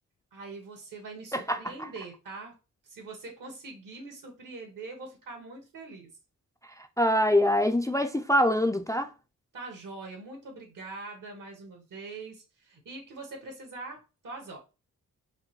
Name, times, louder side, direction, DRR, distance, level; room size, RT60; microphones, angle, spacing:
voice 1, 0.3-2.5 2.9-6.1 9.5-14.6, right 3 dB, 75° right, 1.7 m, -43 dB
voice 2, 1.3-1.7 6.8-9.1, left 1 dB, 10° left, 0.3 m, -24 dB
5.1 x 2.2 x 3.0 m
cardioid pair, 80°, 32 cm